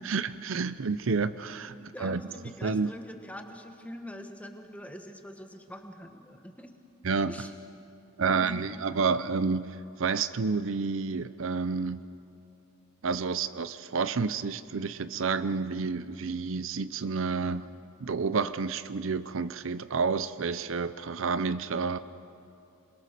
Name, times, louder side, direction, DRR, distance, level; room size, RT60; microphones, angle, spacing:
voice 1, 0.0-1.7 2.0-2.2 2.6-2.9 7.0-7.3 8.2-12.0 13.0-17.7 18.0-22.0, right 4 dB, 65° right, 14 dB, 0.6 m, -29 dB
voice 2, 1.8-6.7 7.3-7.5 8.2-8.6, equal, 5° left, 5 dB, 1.4 m, -44 dB
27.0 x 22.0 x 6.7 m, 2.6 s
head